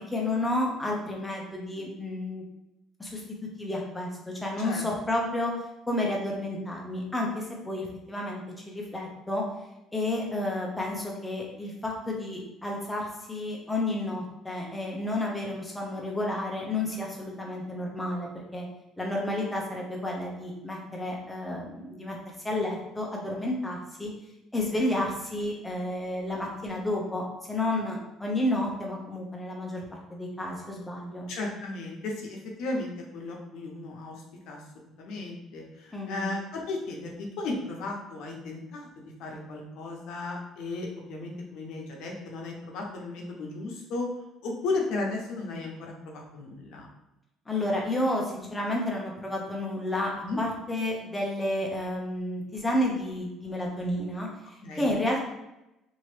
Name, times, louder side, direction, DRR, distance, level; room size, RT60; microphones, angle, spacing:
voice 1, 0.1-2.4 3.0-3.2 3.6-5.5 5.9-9.4 9.9-18.7 19.0-22.2 22.4-24.1 24.5-29.8 30.1-31.3 35.9-36.3 47.5-50.1 50.4-55.2, left 1 dB, 10° left, -1 dB, 0.7 m, -31 dB
voice 2, 31.3-34.2 34.5-34.6 35.0-37.1 37.4-44.1 44.4-46.9 50.3-50.4 54.6-54.9, left 3 dB, 70° left, 0 dB, 0.8 m, -35 dB
2.9 x 2.7 x 3.1 m, 0.93 s
cardioid pair, 145°, 0 cm